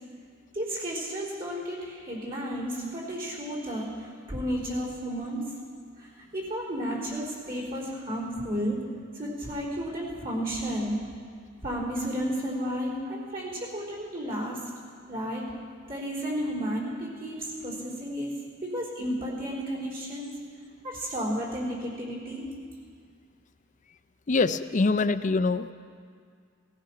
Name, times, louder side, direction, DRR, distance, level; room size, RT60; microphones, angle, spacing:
voice 1, 0.5-5.5 6.0-8.9 9.1-11.0 11.6-14.7 15.1-15.5 15.9-18.3 18.6-20.3 20.8-22.5, equal, 45° right, -5 dB, 3.8 m, -32 dB
voice 2, 24.3-25.7, left 3 dB, 40° left, 12 dB, 0.5 m, -24 dB
17.5 x 14.5 x 5.8 m, 2.1 s
head